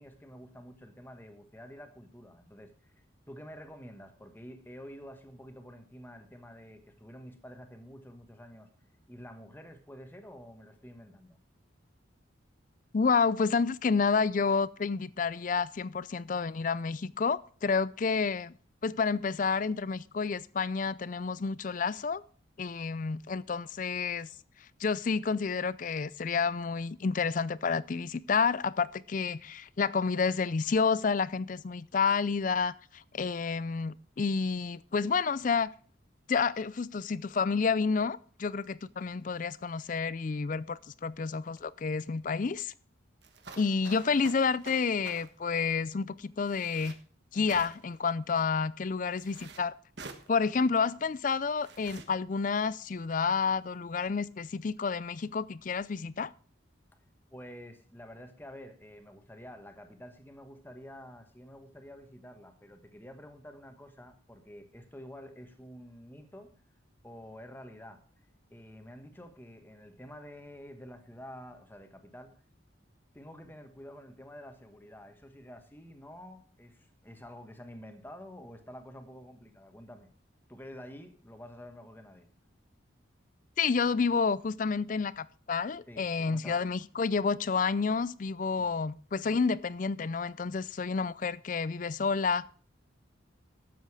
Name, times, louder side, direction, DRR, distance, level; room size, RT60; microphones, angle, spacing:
voice 1, 0.0-8.7 9.1-11.4 57.3-66.5 67.0-68.0 68.5-72.3 73.1-80.1 80.5-82.3 85.9-86.8 88.6-88.8, equal, 10° left, 1.3 m, -49 dB
voice 2, 12.9-18.5 18.8-22.2 22.6-24.3 24.8-35.7 36.3-42.7 43.6-47.0 47.3-49.7 50.3-56.3 83.6-92.5, left 5 dB, 40° left, 0.4 m, -29 dB
sound 1, 43.2-45.3 46.5-47.0 47.5-48.0 49.1-49.6 50.0-50.3 51.6-52.1, right 4 dB, 60° right, 1.5 m, -48 dB
13.0 x 8.0 x 4.8 m
head